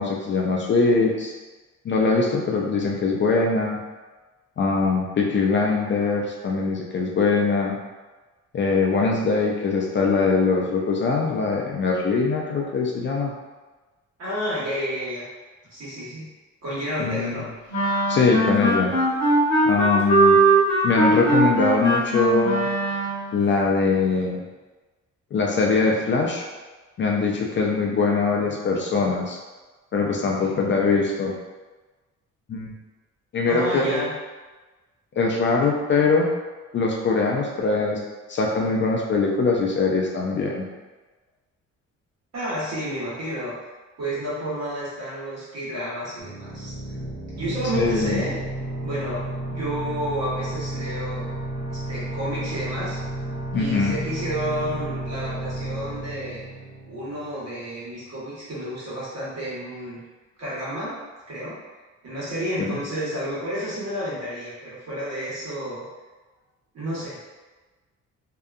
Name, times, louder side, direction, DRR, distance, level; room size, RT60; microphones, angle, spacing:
voice 1, 0.0-1.3 1.8-3.8 4.6-7.8 8.5-13.3 17.0-17.4 18.1-18.9 19.7-20.4 20.8-22.7 23.3-24.4 25.3-26.4 27.0-29.4 29.9-31.4 32.5-32.7 33.3-34.0 35.2-36.3 36.7-38.0 38.3-40.6 47.7-48.2 53.5-53.9 62.6-62.7, left 4 dB, 40° left, -1 dB, 0.4 m, -22 dB
voice 2, 14.2-15.3 15.7-16.2 16.6-17.5 30.4-30.5 33.5-34.1 42.3-43.5 44.0-46.7 47.3-48.3 48.8-49.2 49.5-51.3 51.7-53.0 53.5-56.4 56.9-60.0 60.4-60.9 61.3-61.6 62.0-65.8 66.7-67.2, right 1 dB, 60° right, -8 dB, 1.3 m, -30 dB
sound 1, 17.7-23.4, right 2 dB, 60° left, 0.9 m, -20 dB
sound 2, 46.2-57.6, right 1 dB, 25° right, 0.7 m, -32 dB
2.7 x 2.2 x 2.4 m, 1.2 s
cardioid pair, 90°, 30 cm